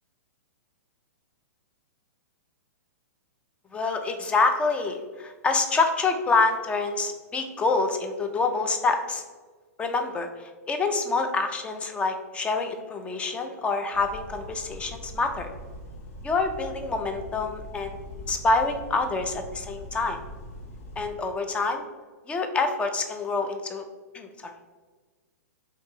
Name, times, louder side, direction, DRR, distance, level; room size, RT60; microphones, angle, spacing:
voice 1, 3.7-9.2 9.8-15.5 16.2-18.0 18.3-20.2 21.0-21.8 22.3-23.8 24.1-24.5, left 3 dB, 15° left, 6 dB, 0.3 m, -26 dB
sound 1, 13.9-21.1, equal, 55° left, 0.7 m, -42 dB
2.7 x 2.6 x 3.8 m, 1.4 s
hypercardioid pair, 115°, 9 cm